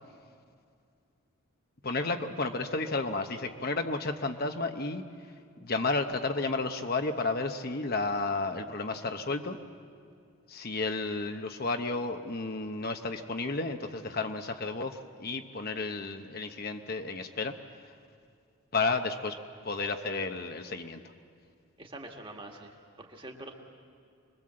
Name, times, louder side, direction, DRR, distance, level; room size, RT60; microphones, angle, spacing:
voice 1, 1.8-5.0 5.6-9.6 10.5-17.5 18.7-19.4 19.6-21.0, left 3 dB, 45° left, 6 dB, 0.9 m, -32 dB
voice 2, 21.8-23.5, right 2 dB, 25° right, 2 dB, 1.9 m, -45 dB
25.5 x 21.5 x 7.6 m, 2.3 s
head